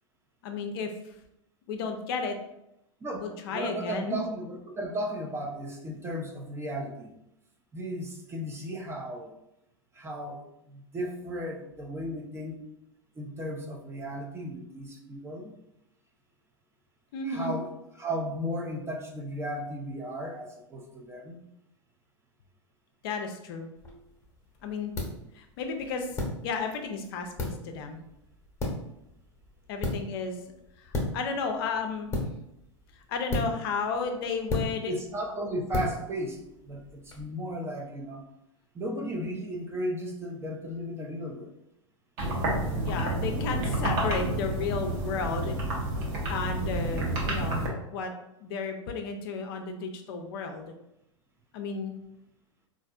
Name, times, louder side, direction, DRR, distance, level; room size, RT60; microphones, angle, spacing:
voice 1, 0.4-0.9 1.7-2.4 3.2-4.2 17.1-17.5 23.0-23.7 24.6-24.9 25.3-26.1 26.4-28.0 29.7-30.3 30.8-32.1 33.1-34.9 42.8-45.6 46.3-47.6 47.9-48.1 48.4-50.7 51.5-51.9, left 4 dB, 50° left, 5 dB, 0.5 m, -33 dB
voice 2, 3.0-7.1 7.7-9.3 9.9-12.6 13.2-15.5 17.2-17.7 18.0-21.4 34.9-38.2 38.7-41.5, equal, 15° right, 0 dB, 0.5 m, -35 dB
sound 1, 23.8-37.2, left 2 dB, 15° left, 0.9 m, -36 dB
sound 2, 42.2-47.7, right 1 dB, 45° right, 0.9 m, -29 dB
4.1 x 2.5 x 2.4 m, 0.84 s
figure-of-eight pair, 95°, 16 cm